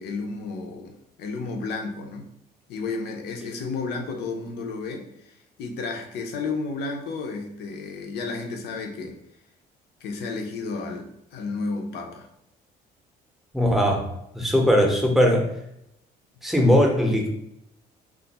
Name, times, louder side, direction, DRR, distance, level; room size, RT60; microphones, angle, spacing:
voice 1, 0.0-2.3 2.7-9.2 10.0-12.3, left 4 dB, 75° left, 3 dB, 0.6 m, -32 dB
voice 2, 13.5-14.1 14.3-15.5 16.4-17.3, equal, ahead, 0 dB, 0.7 m, -19 dB
2.5 x 2.4 x 3.9 m, 0.78 s
cardioid pair, 110°, 17 cm